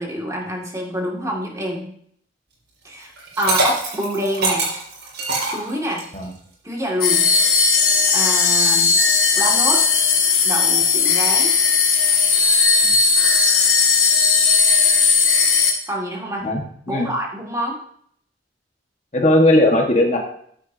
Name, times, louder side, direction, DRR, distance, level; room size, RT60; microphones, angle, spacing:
voice 1, 0.0-1.9 2.8-4.7 5.5-6.0 6.6-7.3 8.1-9.0 9.3-9.8 10.4-11.5 15.9-16.5 16.9-17.8, equal, 20° right, -2 dB, 2.2 m, -26 dB
Liquid, 3.2-6.2, right 2 dB, 75° right, 5.1 m, -23 dB
sound 1, 7.0-15.7, left 5 dB, 55° left, 2.0 m, -16 dB
voice 2, 19.1-20.2, left 1 dB, 40° left, 1 dB, 1.5 m, -17 dB
14.0 x 9.4 x 2.8 m, 0.64 s
head